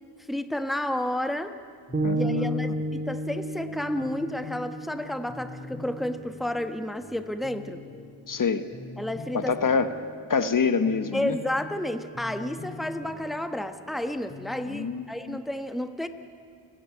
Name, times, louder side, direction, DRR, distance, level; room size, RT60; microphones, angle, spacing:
voice 1, 0.3-1.5 2.1-7.8 9.0-9.6 11.1-16.1, left 1 dB, ahead, 8 dB, 1.2 m, -31 dB
sound 1, 1.9-15.2, left 3 dB, 25° left, 2.9 m, -44 dB
sound 2, 1.9-6.1, right 1 dB, 20° right, 2.9 m, -31 dB
voice 2, 2.0-2.7 8.3-8.6 9.3-9.9 10.3-11.4 14.7-15.4, left 5 dB, 40° left, 10 dB, 1.1 m, -26 dB
29.5 x 10.0 x 9.7 m, 2.1 s
cardioid pair, 65°, 47 cm